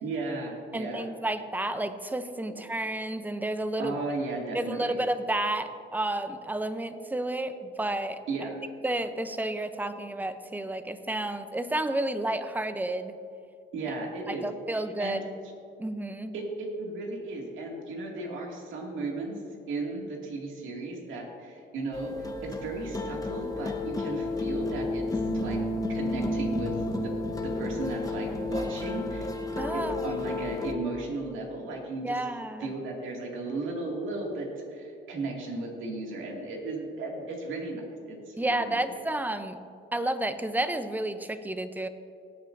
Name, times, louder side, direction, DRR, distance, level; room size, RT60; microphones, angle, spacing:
voice 1, 0.0-1.1 3.8-5.0 8.3-8.6 13.7-14.4 14.7-15.2 16.3-19.4 19.7-25.6 25.9-26.7 27.0-27.1 27.4-29.3 29.7-32.2 32.6-38.8, right 2 dB, 80° right, -1 dB, 2.3 m, -35 dB
voice 2, 0.7-4.0 4.5-8.5 8.8-13.2 14.3-15.2 15.8-16.3 29.6-30.1 32.0-32.7 38.4-39.6 39.9-41.9, right 1 dB, 10° right, 10 dB, 0.6 m, -31 dB
sound 1, 21.9-30.7, left 2 dB, 20° left, 1.0 m, -31 dB
17.5 x 8.9 x 2.6 m, 2.5 s
cardioid pair, 90°, 20 cm